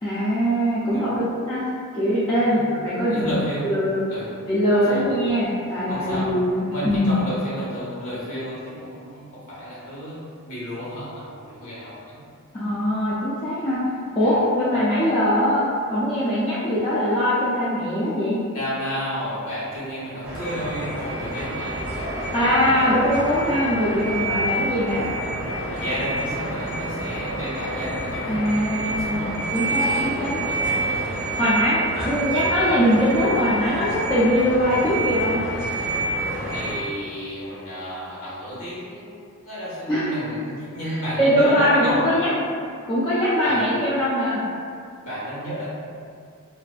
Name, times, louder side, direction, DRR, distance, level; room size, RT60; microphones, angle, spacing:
voice 1, 0.0-1.7 1.9-3.4 3.6-4.0 4.5-7.1 12.5-13.8 14.2-18.4 22.3-25.1 28.3-29.2 29.5-30.4 31.4-35.4 39.9-40.2 40.8-42.3 42.9-44.4, equal, 20° left, -11 dB, 0.3 m, -22 dB
voice 2, 3.0-3.7 4.1-4.2 4.9-5.0 5.9-6.3 6.7-12.2 14.2-14.4 14.7-14.8 18.5-21.9 25.7-28.4 28.7-29.3 29.7-31.1 36.5-42.0 43.4-43.6 45.0-45.7, equal, 80° left, -9 dB, 1.1 m, -32 dB
sound 1, 20.2-36.7, right 2 dB, 45° right, 0.5 m, -28 dB
2.5 x 2.4 x 2.3 m, 2.3 s
head